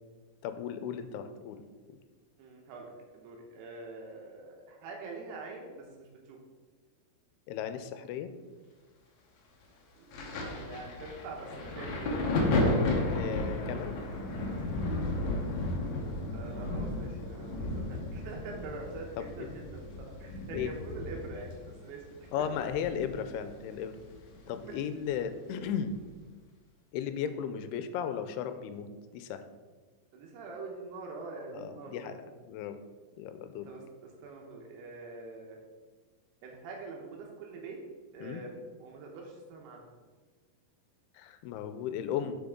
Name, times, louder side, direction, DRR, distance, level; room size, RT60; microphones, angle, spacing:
voice 1, 0.4-1.6 1.9-2.0 7.5-8.3 13.1-14.0 19.2-19.5 20.5-20.7 22.3-24.0 24.5-25.9 26.9-29.4 31.5-32.2 32.5-32.8 33.2-33.7 38.2-38.4 41.1-42.4, left 8 dB, 85° left, 10 dB, 2.6 m, -35 dB
voice 2, 2.4-6.4 10.0-12.1 16.3-22.0 30.1-32.2 33.7-35.6 36.4-37.8 38.1-39.8, right 3 dB, 90° right, 0 dB, 3.0 m, -44 dB
Thunder, 10.1-23.5 23.7-25.1 25.9-26.1, left 2 dB, 70° left, 1.7 m, -33 dB
7.7 x 6.4 x 3.6 m, 1.4 s
omnidirectional pair, 4.5 m